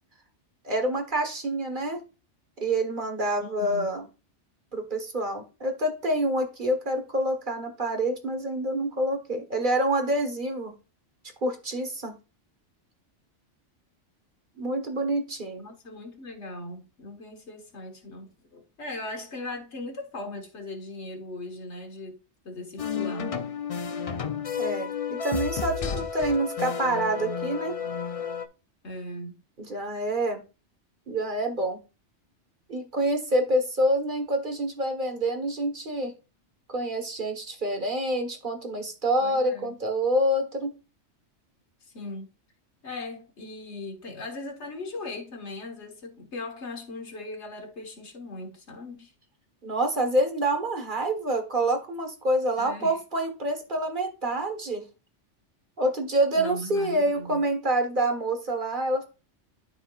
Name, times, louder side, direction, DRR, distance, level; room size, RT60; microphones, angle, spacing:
voice 1, 0.6-2.0 2.6-4.0 4.7-10.7 11.4-12.2 14.6-15.7 24.6-27.8 29.6-30.4 31.1-31.8 32.7-36.1 36.7-40.7 49.6-54.8 55.8-59.0, right 1 dB, 45° right, 1.5 m, -27 dB
voice 2, 3.4-4.0 15.6-23.4 28.8-29.4 39.2-39.8 41.8-42.3 42.8-49.1 52.6-53.0 56.3-57.4, left 2 dB, 70° left, 1.8 m, -39 dB
sound 1, 22.8-28.5, left 7 dB, 50° left, 0.4 m, -31 dB
12.5 x 4.3 x 2.4 m
omnidirectional pair, 1.2 m